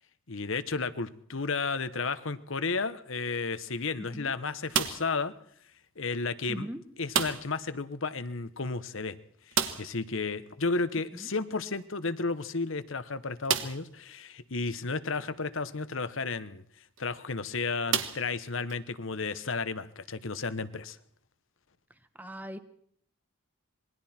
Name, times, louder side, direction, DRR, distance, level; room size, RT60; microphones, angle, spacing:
voice 1, 0.3-5.3 6.0-6.7 7.0-9.2 9.8-16.6 17.0-21.0, left 4 dB, 65° left, 13 dB, 1.1 m, -33 dB
voice 2, 4.0-4.3 6.5-6.8 22.2-22.6, equal, 10° right, 10 dB, 1.1 m, -39 dB
sound 1, 4.7-5.3 7.1-7.7 7.9-8.0 8.3-8.4 9.5-10.1 11.8-11.9 12.5-12.6 13.4-14.0 14.7-14.8 16.8-17.0 17.9-18.8, right 7 dB, 65° right, 1.5 m, -31 dB
26.5 x 22.0 x 4.4 m, 0.63 s
head